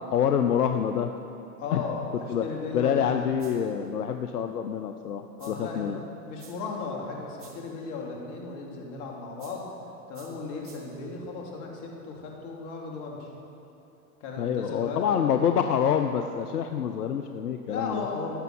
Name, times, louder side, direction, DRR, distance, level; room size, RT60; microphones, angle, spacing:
voice 1, 0.1-1.1 1.7-1.8 2.3-2.4 2.7-6.0 14.4-18.0, left 8 dB, 90° left, 6 dB, 0.7 m, -26 dB
voice 2, 1.6-3.3 5.4-5.9 6.3-9.7 10.1-13.3 14.2-15.3 17.7-18.4, left 4 dB, 60° left, -1 dB, 3.2 m, -36 dB
sound 1, 3.4-3.8 5.4-5.8 6.4-6.8 7.4-7.8 9.4-9.8 10.1-11.1, right 5 dB, 30° right, 2.1 m, -54 dB
17.5 x 6.9 x 7.8 m, 2.8 s
hypercardioid pair, 95°, 44 cm